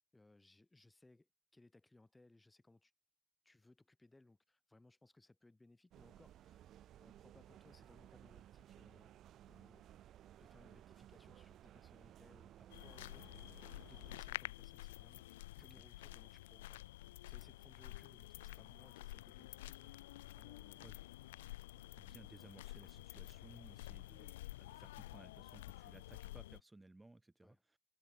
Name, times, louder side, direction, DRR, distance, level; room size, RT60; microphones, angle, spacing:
voice 1, 0.1-2.9 3.4-6.7 7.0-9.1 9.5-9.9 10.4-20.0 20.4-20.9 21.8-21.9 24.2-24.3 27.4-27.6, left 2 dB, 15° left, 7.0 m, -66 dB
sound 1, 5.9-14.2, right 12 dB, 60° right, 0.9 m, -59 dB
sound 2, 12.7-26.6, left 17 dB, 85° left, 0.7 m, -50 dB
voice 2, 22.0-24.3 24.6-27.8, right 2 dB, 15° right, 2.2 m, -60 dB
hypercardioid pair, 60°, 0 cm